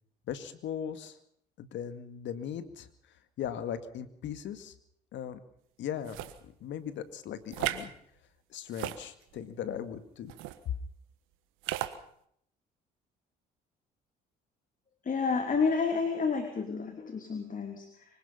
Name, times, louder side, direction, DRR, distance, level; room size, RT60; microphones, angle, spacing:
voice 1, 0.3-1.2 1.6-2.9 3.4-4.7 5.1-5.4 5.8-7.9 8.5-10.3, left 9 dB, 65° left, 12 dB, 2.1 m, -38 dB
sound 1, 6.1-6.4 7.5-7.9 8.7-9.5 10.3-10.6 11.6-12.0, right 14 dB, 75° right, 1.4 m, -35 dB
voice 2, 15.0-18.0, left 5 dB, 40° left, 6 dB, 3.2 m, -30 dB
25.0 x 18.5 x 5.7 m, 0.68 s
hypercardioid pair, 55°, 20 cm